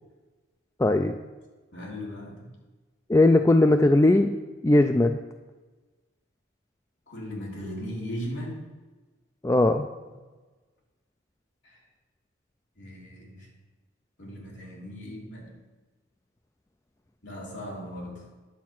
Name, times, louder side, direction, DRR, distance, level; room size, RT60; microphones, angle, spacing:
voice 1, 0.8-1.2 3.1-4.4 4.6-5.2 9.4-9.9, left 2 dB, 15° left, 7 dB, 0.3 m, -19 dB
voice 2, 1.7-2.3 7.1-8.6 11.6-11.8 12.8-13.5 14.2-15.5 17.2-18.2, equal, 60° left, -3 dB, 3.2 m, -37 dB
10.5 x 7.3 x 6.0 m, 1.3 s
head